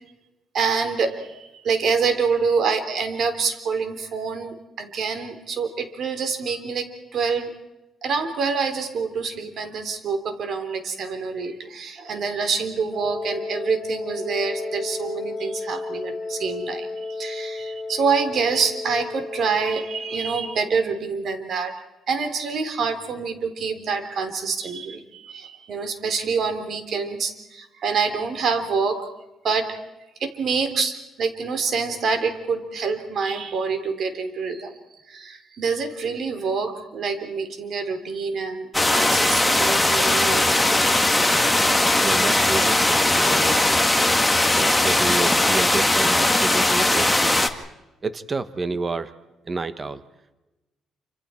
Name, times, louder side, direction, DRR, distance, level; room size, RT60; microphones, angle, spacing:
voice 1, 0.5-7.5 8.0-21.7 22.1-29.1 29.4-29.8 30.2-34.7 35.1-40.5, right 5 dB, 60° right, 8 dB, 3.6 m, -26 dB
Wind instrument woodwind instrument, 12.9-20.8, left 3 dB, 25° left, 2.8 m, -33 dB
sound 1, 38.7-47.5, left 1 dB, 5° left, 2.0 m, -19 dB
voice 2, 42.0-43.8 44.5-47.4 48.0-49.1 49.5-50.0, right 3 dB, 30° right, 12 dB, 1.3 m, -29 dB
28.5 x 26.5 x 4.5 m, 1.0 s
cardioid pair, 90°, 0 cm